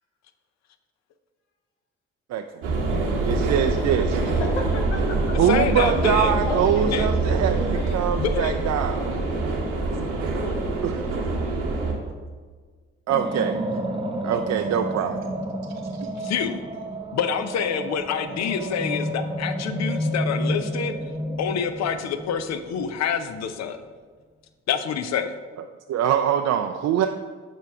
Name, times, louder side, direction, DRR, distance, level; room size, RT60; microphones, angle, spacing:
voice 1, 2.3-2.8 3.2-4.2 5.4-9.0 10.8-11.1 13.1-13.8 14.2-15.2 16.0-16.3 25.6-27.1, right 9 dB, 50° right, 6 dB, 0.5 m, -24 dB
sound 1, 2.6-11.9, right 3 dB, 80° right, 1.0 m, -25 dB
voice 2, 4.2-5.4 5.8-7.0 7.2-8.1 8.4-9.2 18.3-18.4, left 2 dB, 85° left, 1 dB, 1.0 m, -32 dB
voice 3, 5.5-6.3 6.8-7.1 8.2-8.6 16.2-16.6 17.1-21.0 21.4-23.8 24.7-25.3, left 7 dB, 50° left, 9 dB, 0.7 m, -27 dB
sound 2, 13.1-23.2, equal, 15° right, 0.9 m, -30 dB
6.8 x 4.6 x 4.8 m, 1.5 s
figure-of-eight pair, 40°, 35 cm